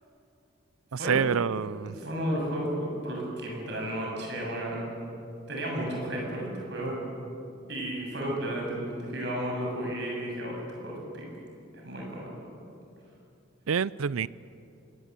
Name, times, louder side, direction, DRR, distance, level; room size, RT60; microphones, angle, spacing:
voice 1, 0.9-2.0 13.7-14.3, right 6 dB, 85° right, 20 dB, 0.5 m, -27 dB
voice 2, 1.8-4.9 5.5-7.0 7.7-11.2 11.7-12.3, right 1 dB, 55° right, -1 dB, 7.5 m, -33 dB
25.5 x 19.5 x 8.3 m, 2.6 s
head